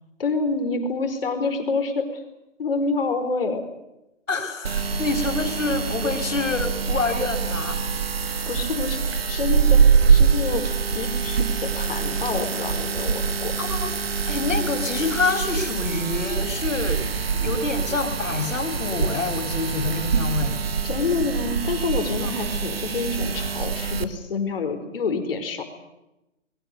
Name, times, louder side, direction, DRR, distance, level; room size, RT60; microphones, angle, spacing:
voice 1, 0.2-2.2 2.6-3.6 8.5-9.8 10.1-10.6 10.9-13.5 20.8-25.6, left 4 dB, 45° left, 6 dB, 4.8 m, -27 dB
voice 2, 4.3-7.8 13.6-17.0 17.4-20.6 22.2-22.5, left 3 dB, 85° left, 7 dB, 5.4 m, -27 dB
sound 1, 4.6-24.0, right 6 dB, 50° right, 1.9 m, -24 dB
28.0 x 22.0 x 6.9 m, 0.92 s
hypercardioid pair, 175°, 38 cm